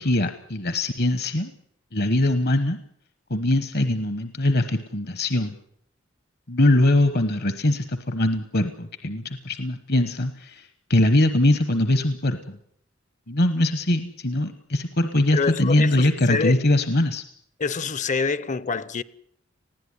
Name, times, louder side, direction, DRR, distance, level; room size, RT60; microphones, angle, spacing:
voice 1, 0.0-1.5 1.9-2.8 3.3-5.5 6.5-12.6 13.3-17.2, left 1 dB, 55° left, 1.1 m, -22 dB
voice 2, 15.3-16.6 17.6-19.0, left 5 dB, 35° left, 0.7 m, -26 dB
20.0 x 15.5 x 9.8 m
head